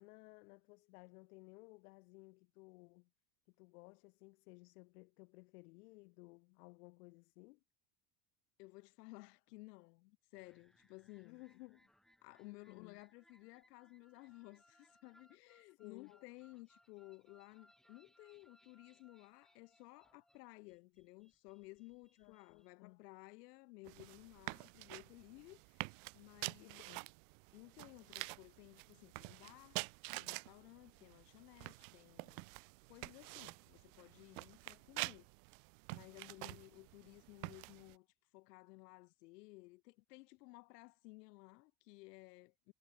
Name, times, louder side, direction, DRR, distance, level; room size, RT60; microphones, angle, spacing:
voice 1, 0.0-3.1 3.5-7.6 11.2-11.9 12.4-13.0 15.8-16.1 22.2-23.0 26.6-27.1 36.1-36.6, left 26 dB, 70° left, 5.5 m, -58 dB
voice 2, 8.6-11.4 12.2-26.9 27.5-29.8 30.1-32.5 32.9-35.3 35.9-38.1 38.3-42.7, left 23 dB, 90° left, 1.3 m, -57 dB
sound 1, 10.4-22.7, equal, ahead, 7.7 m, -72 dB
sound 2, 23.8-38.0, right 34 dB, 55° right, 0.8 m, -48 dB
cardioid pair, 175°, 46 cm